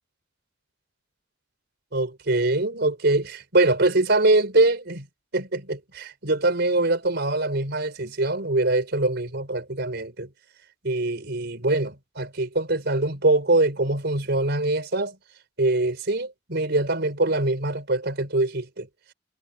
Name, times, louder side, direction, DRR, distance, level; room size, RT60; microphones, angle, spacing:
voice 1, 1.9-5.1 5.3-10.3 10.8-15.2 15.6-18.9, right 2 dB, 60° right, 4.6 m, -23 dB
head